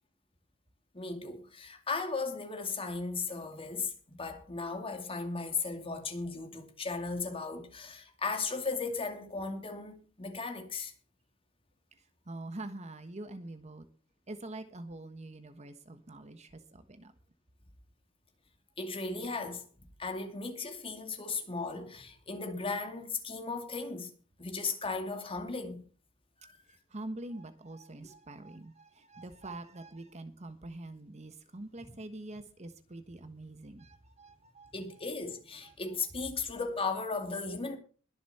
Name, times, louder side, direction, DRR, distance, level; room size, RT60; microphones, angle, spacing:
voice 1, 0.9-10.9 18.8-19.6 20.0-24.1 24.4-25.8 26.4-26.5 31.8-31.9 34.7-37.8, left 4 dB, 30° left, 2.4 m, -36 dB
voice 2, 12.3-13.8 14.3-17.1 26.9-34.7 35.6-35.7, right 2 dB, 35° right, 1.2 m, -45 dB
21.5 x 7.2 x 4.3 m
head